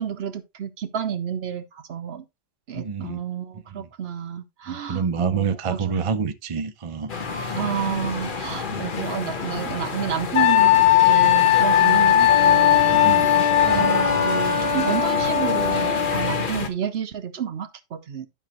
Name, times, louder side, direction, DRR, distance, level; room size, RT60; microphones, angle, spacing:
voice 1, 0.0-2.2 2.7-6.1 7.5-13.2 13.6-18.3, right 8 dB, 60° right, 1.0 m, -30 dB
voice 2, 2.7-3.2 3.7-3.9 4.7-7.1 8.7-8.8 12.9-13.3 13.7-13.9, right 6 dB, 35° right, 0.5 m, -27 dB
sound 1, 7.1-16.7, left 5 dB, 45° left, 1.1 m, -29 dB
Wind instrument woodwind instrument, 10.3-14.1, left 13 dB, 90° left, 1.0 m, -17 dB
Wind instrument woodwind instrument 2, 12.3-16.5, left 5 dB, 25° left, 1.7 m, -23 dB
11.0 x 5.6 x 3.0 m
omnidirectional pair, 1.3 m